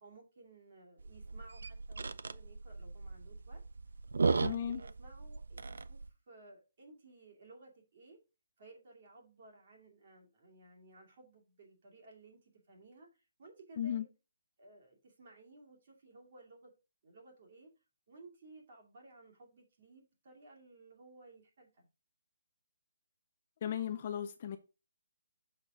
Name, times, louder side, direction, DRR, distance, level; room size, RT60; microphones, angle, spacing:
voice 1, 0.0-3.6 4.4-8.2 8.6-14.1 14.6-16.7 17.0-17.7 18.1-21.9, right 2 dB, 30° right, 2.4 m, -58 dB
sound 1, 1.0-6.1, right 4 dB, 70° right, 0.5 m, -36 dB
voice 2, 4.4-4.8 13.8-14.1 23.6-24.6, left 9 dB, 25° left, 0.4 m, -36 dB
6.5 x 5.9 x 3.7 m
hypercardioid pair, 180°, 0 cm